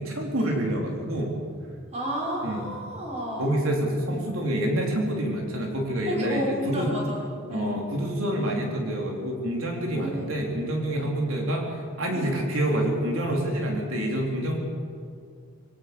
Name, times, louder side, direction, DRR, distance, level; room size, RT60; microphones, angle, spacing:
voice 1, 0.0-1.3 2.4-2.6 3.4-6.9 7.5-14.6, right 1 dB, 75° right, 1 dB, 3.9 m, -27 dB
voice 2, 1.9-3.6 4.1-4.2 6.1-7.8 9.9-10.3 10.9-11.1 12.1-12.3, equal, 30° right, -2 dB, 5.4 m, -32 dB
22.0 x 17.5 x 7.0 m, 2.2 s
head